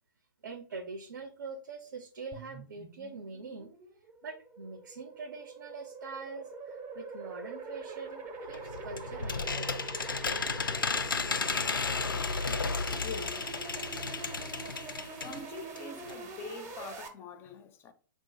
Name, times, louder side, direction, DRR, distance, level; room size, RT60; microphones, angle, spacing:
voice 1, 0.4-3.7 4.2-9.7 14.6-15.1, right 4 dB, 65° right, 0.6 m, -44 dB
sound 1, 2.3-17.1, right 4 dB, 20° right, 0.6 m, -44 dB
sound 2, 8.5-15.4 15.8-15.9 16.1-16.2, left 4 dB, 80° left, 0.4 m, -33 dB
voice 2, 12.4-13.5 15.0-17.9, left 5 dB, 20° left, 0.5 m, -45 dB
3.8 x 2.4 x 3.8 m
figure-of-eight pair, 120°, 11 cm